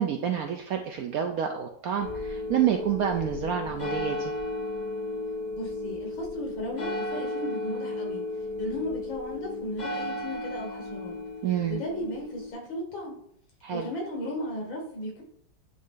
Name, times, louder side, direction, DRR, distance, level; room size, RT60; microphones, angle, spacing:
voice 1, 0.0-4.3 11.4-11.8 13.6-13.9, right 9 dB, 75° right, 4 dB, 0.8 m, -28 dB
sound 1, 2.0-12.5, left 2 dB, 40° left, 0.7 m, -34 dB
voice 2, 5.6-8.2 8.6-11.1 11.7-13.2 13.7-15.2, left 1 dB, 85° left, 0 dB, 2.5 m, -35 dB
9.4 x 3.1 x 3.8 m, 0.68 s
omnidirectional pair, 2.1 m